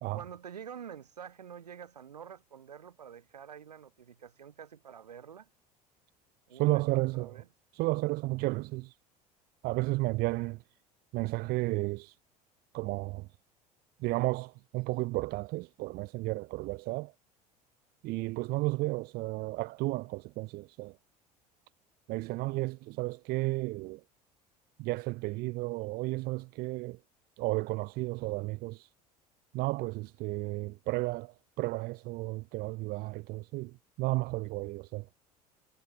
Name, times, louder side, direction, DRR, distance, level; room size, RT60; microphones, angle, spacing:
voice 1, 0.1-5.5 6.5-7.4, right 8 dB, 75° right, 7.4 m, -47 dB
voice 2, 6.5-7.3 7.7-8.9 9.6-10.6 11.1-12.1 12.7-13.3 14.0-17.1 18.0-21.0 22.1-24.0 24.8-27.0 27.4-28.9 29.5-35.1, right 21 dB, 50° right, 1.1 m, -33 dB
figure-of-eight pair, 65°, 20 cm